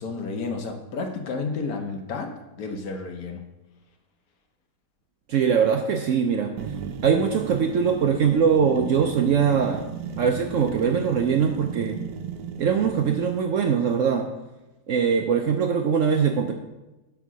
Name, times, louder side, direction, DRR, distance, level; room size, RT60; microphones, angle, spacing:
voice 1, 0.0-3.4, left 4 dB, 65° left, 5 dB, 1.2 m, -31 dB
voice 2, 5.3-6.5 7.0-9.9 10.2-12.0 12.6-14.3 14.9-16.5, right 6 dB, 65° right, 4 dB, 0.8 m, -22 dB
sound 1, 6.6-13.3, right 7 dB, 90° right, 1.2 m, -35 dB
8.1 x 3.7 x 6.1 m, 1.0 s
omnidirectional pair, 1.8 m